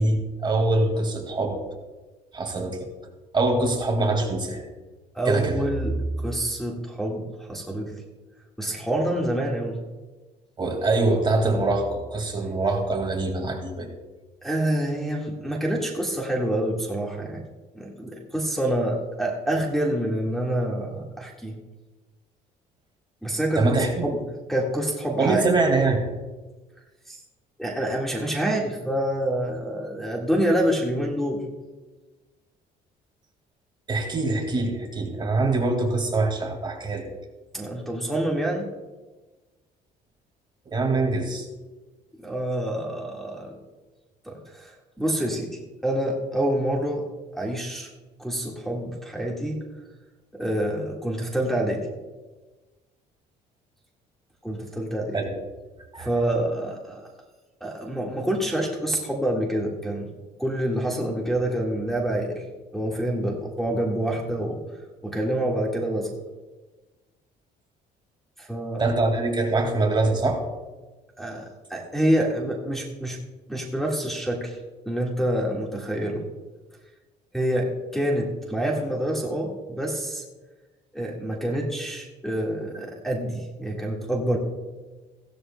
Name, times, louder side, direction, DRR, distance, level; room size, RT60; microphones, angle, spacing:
voice 1, 0.0-1.6 2.3-2.9 3.3-4.6 5.3-5.6 10.6-13.9 23.6-24.0 25.2-26.0 33.9-37.1 40.7-41.5 55.1-55.3 55.9-56.1 68.8-70.4, right 2 dB, 25° right, 3 dB, 2.1 m, -24 dB
voice 2, 5.1-7.9 8.6-9.8 14.4-17.4 17.7-21.6 23.2-24.2 24.5-25.4 27.1-27.2 27.6-31.4 37.5-38.7 42.2-43.6 44.2-44.7 45.0-47.0 47.3-47.9 48.2-49.6 50.3-51.9 54.4-55.2 55.9-57.0 57.6-60.1 60.4-62.4 62.7-64.6 65.0-66.1 68.4-68.9 71.2-73.2 73.5-74.6 74.8-76.2 77.3-80.2 80.9-84.4, right 1 dB, ahead, -3 dB, 1.7 m, -27 dB
16.0 x 12.5 x 2.2 m, 1.2 s
cardioid pair, 110°, 17 cm